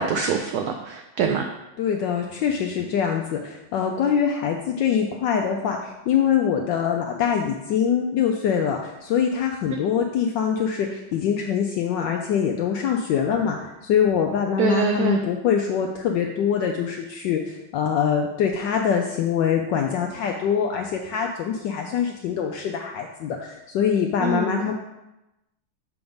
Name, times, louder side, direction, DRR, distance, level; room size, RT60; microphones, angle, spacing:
voice 1, 0.0-1.5 14.6-15.2 24.2-24.6, right 6 dB, 80° right, 4 dB, 0.8 m, -24 dB
voice 2, 1.8-24.8, left 7 dB, 75° left, 2 dB, 1.1 m, -24 dB
6.9 x 3.6 x 5.2 m, 0.96 s
omnidirectional pair, 2.2 m